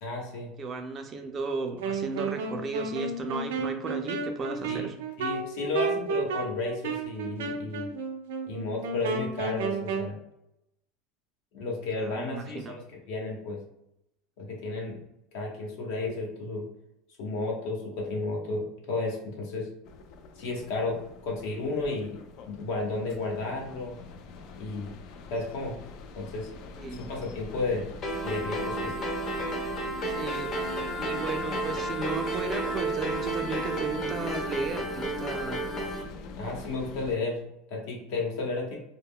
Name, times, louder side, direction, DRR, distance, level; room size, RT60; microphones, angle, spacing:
voice 1, 0.0-0.5 4.7-4.9 5.2-7.9 8.5-10.2 11.5-12.8 13.1-13.6 14.4-15.0 15.3-16.7 17.2-19.7 20.4-22.2 22.5-24.0 24.6-24.9 25.3-25.8 26.2-26.5 27.0-27.9 28.2-28.9 36.4-37.4 37.7-38.7, left 3 dB, 70° left, 0 dB, 0.9 m, -32 dB
voice 2, 0.6-4.9 12.0-12.7 26.7-27.1 30.0-30.7 31.0-35.7, right 3 dB, 30° right, 5 dB, 0.4 m, -35 dB
Wind instrument woodwind instrument, 1.8-10.1, right 4 dB, 90° right, 0.4 m, -32 dB
sound 1, 19.9-37.2, left 3 dB, 55° left, 0.3 m, -43 dB
sound 2, 28.0-36.0, right 1 dB, 40° left, 0.7 m, -32 dB
2.2 x 2.1 x 3.5 m, 0.84 s
supercardioid pair, 125°, 0 cm